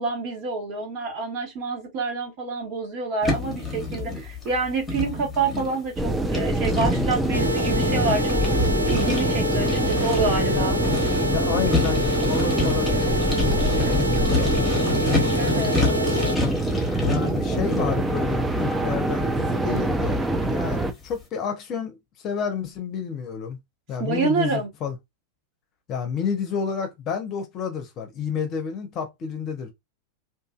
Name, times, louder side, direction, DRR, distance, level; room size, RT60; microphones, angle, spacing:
voice 1, 0.0-8.4 8.8-10.8 15.3-16.4 17.1-18.0 24.0-24.7, right 4 dB, 45° right, 1.2 m, -28 dB
sound 1, 3.2-20.9, left 2 dB, 15° left, 1.1 m, -29 dB
sound 2, 6.0-20.9, right 2 dB, 10° right, 0.5 m, -25 dB
sound 3, 7.3-16.4, left 1 dB, 85° right, 0.4 m, -27 dB
voice 2, 10.4-10.7 11.2-15.5 17.0-23.6 23.9-24.9 25.9-29.7, left 6 dB, 35° left, 0.8 m, -31 dB
2.7 x 2.5 x 2.4 m
figure-of-eight pair, 90°, 0 cm